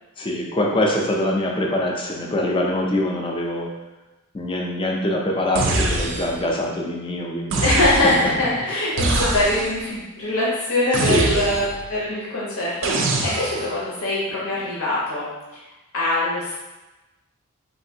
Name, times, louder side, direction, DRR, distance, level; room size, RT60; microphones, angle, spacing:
voice 1, 0.2-3.7 4.3-7.6 11.1-11.5, left 1 dB, 25° left, -1 dB, 0.3 m, -23 dB
Heavy Laser, 5.5-6.5 7.5-8.4 9.0-9.8 10.9-11.9 12.8-13.7, right 2 dB, 60° right, 0.4 m, -23 dB
voice 2, 7.6-15.6 15.9-16.6, left 1 dB, 75° left, -6 dB, 0.7 m, -23 dB
3.3 x 2.5 x 2.7 m, 1.1 s
head